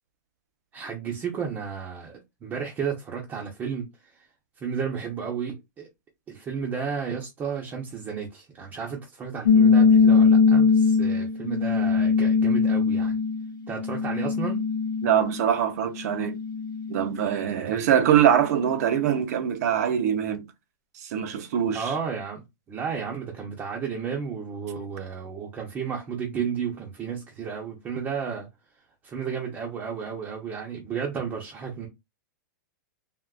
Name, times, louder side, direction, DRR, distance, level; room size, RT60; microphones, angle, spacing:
voice 1, 0.7-2.1 2.4-3.9 4.6-5.9 6.3-13.1 13.7-14.7 17.6-17.8 21.7-28.5 29.0-31.9, right 6 dB, 20° right, 0.6 m, -32 dB
sound 1, 9.5-15.5 15.9-17.3, left 5 dB, 90° left, 0.5 m, -21 dB
voice 2, 15.0-16.4 16.9-20.5 20.9-21.9, right 9 dB, 55° right, 0.6 m, -23 dB
3.6 x 2.4 x 2.3 m
supercardioid pair, 155°, 10 cm